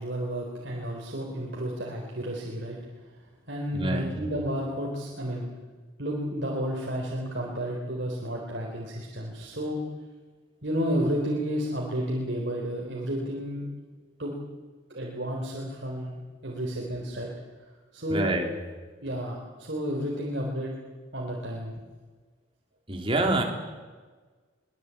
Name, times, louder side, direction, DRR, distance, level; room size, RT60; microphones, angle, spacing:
voice 1, 0.0-2.8 3.5-5.5 6.0-9.8 10.6-13.7 14.2-14.3 14.9-16.1 16.4-17.3 17.9-18.2 19.0-20.7 21.1-21.7, equal, 60° right, -2 dB, 4.0 m, -31 dB
voice 2, 3.7-4.2 18.1-18.5 22.9-23.4, right 2 dB, 25° right, 2 dB, 3.6 m, -26 dB
24.0 x 20.5 x 8.5 m, 1.4 s
head